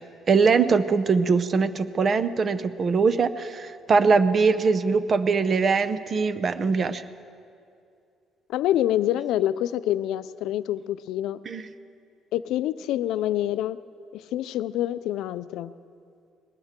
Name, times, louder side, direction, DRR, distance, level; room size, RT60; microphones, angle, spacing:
voice 1, 0.3-7.0 11.5-11.6, right 5 dB, 35° right, 13 dB, 0.7 m, -22 dB
voice 2, 8.5-11.4 12.3-13.8 14.1-15.7, left 12 dB, 85° left, 15 dB, 0.4 m, -26 dB
20.5 x 19.5 x 3.7 m, 2.5 s
cardioid pair, 135°, 0 cm